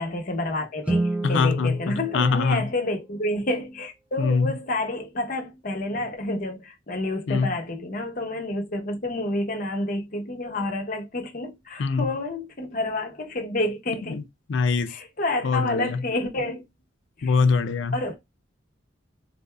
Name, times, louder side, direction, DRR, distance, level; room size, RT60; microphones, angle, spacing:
voice 1, 0.0-14.2 14.9-16.6 17.2-17.3 17.9-18.2, left 2 dB, 45° left, 0.8 m, -29 dB
Guitar, 0.8-3.4, right 2 dB, 5° right, 0.3 m, -30 dB
voice 2, 1.2-2.7 4.2-4.6 7.3-7.6 11.8-12.1 14.1-14.2 14.5-14.9 15.4-16.0 17.2-18.0, left 4 dB, 70° left, 0.4 m, -23 dB
3.8 x 2.6 x 2.2 m
head